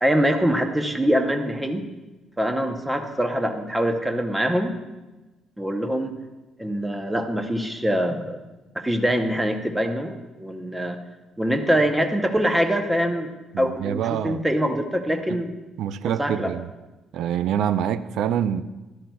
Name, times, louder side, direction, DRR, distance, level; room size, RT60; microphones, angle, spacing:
voice 1, 0.0-1.8 2.4-4.7 5.6-6.1 6.6-8.4 8.7-11.0 11.4-13.3 13.6-15.5 16.2-16.5, equal, 5° right, 5 dB, 0.7 m, -24 dB
voice 2, 13.5-14.5 15.3-15.4 15.8-16.7 17.1-18.6, right 9 dB, 75° right, 14 dB, 0.4 m, -26 dB
13.0 x 11.5 x 2.3 m, 1.1 s
cardioid pair, 155°, 0 cm